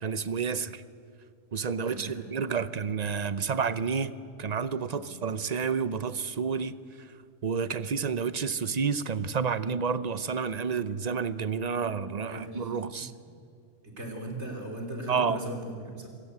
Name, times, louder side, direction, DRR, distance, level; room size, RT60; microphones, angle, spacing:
voice 1, 0.0-0.8 1.5-4.1 4.4-7.1 7.4-13.1 15.1-15.4, right 6 dB, 40° right, 14 dB, 0.7 m, -30 dB
voice 2, 1.9-2.3 2.5-2.7 4.9-5.2 12.3-12.7 13.0-13.1 13.8-16.1, right 1 dB, 60° right, 2 dB, 3.9 m, -38 dB
26.5 x 17.0 x 8.2 m, 2.3 s
omnidirectional pair, 1.3 m